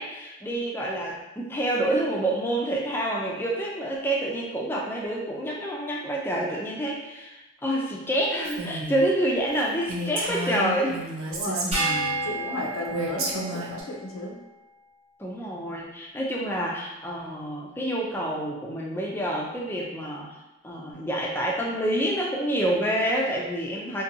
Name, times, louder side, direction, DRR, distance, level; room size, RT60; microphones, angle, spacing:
voice 1, 0.0-11.0 15.2-20.4 20.6-24.0, right 1 dB, 10° left, -3 dB, 0.3 m, -28 dB
Female speech woman speaking, 8.4-9.1 9.5-9.6 9.9-12.2 12.9-13.8, right 2 dB, 90° right, 0.5 m, -32 dB
voice 2, 11.3-11.8 12.2-14.4, left 1 dB, 85° left, -1 dB, 0.5 m, -33 dB
sound 1, 11.7-14.3, right 2 dB, 30° right, 0.7 m, -30 dB
2.6 x 2.2 x 2.7 m, 1.0 s
head